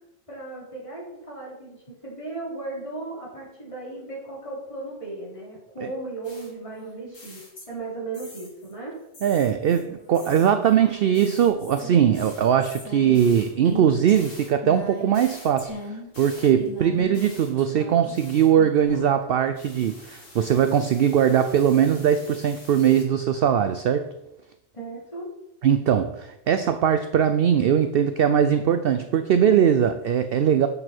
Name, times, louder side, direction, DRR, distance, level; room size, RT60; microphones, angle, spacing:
voice 1, 0.3-1.8 2.0-9.0 24.7-25.3, right 3 dB, 25° left, 3.6 m, -36 dB
sound 1, 6.2-7.9 8.1-8.7 9.1-19.2 19.6-23.0, left 2 dB, 80° left, 2.6 m, -41 dB
voice 2, 9.2-24.1 25.6-30.7, right 8 dB, 60° right, 0.6 m, -21 dB
8.6 x 6.6 x 4.4 m
omnidirectional pair, 1.3 m